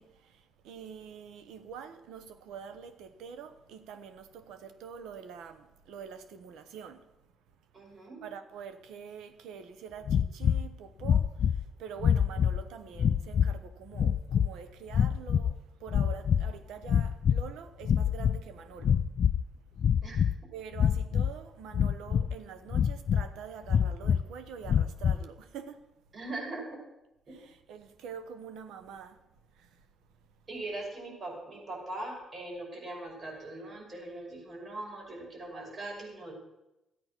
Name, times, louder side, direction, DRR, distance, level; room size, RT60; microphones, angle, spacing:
voice 1, 0.0-7.0 8.2-19.0 20.5-25.8 27.3-29.2 29.6-29.7, right 7 dB, 90° right, 1.1 m, -46 dB
voice 2, 7.7-8.2 20.0-20.2 26.1-26.6 27.3-27.4 30.5-36.3, right 2 dB, 45° right, 5.4 m, -40 dB
sound 1, 10.1-10.7 11.0-11.6 12.0-12.6 13.0-13.6 13.9-14.5 14.9-15.6 15.9-16.5 16.8-17.5 17.8-18.4 18.8-19.4 19.8-20.4 20.8-21.3 21.7-22.4 22.7-23.3 23.7-24.2 24.7-25.2, left 8 dB, 60° left, 0.4 m, -26 dB
14.0 x 8.5 x 6.1 m
cardioid pair, 90°, 0 cm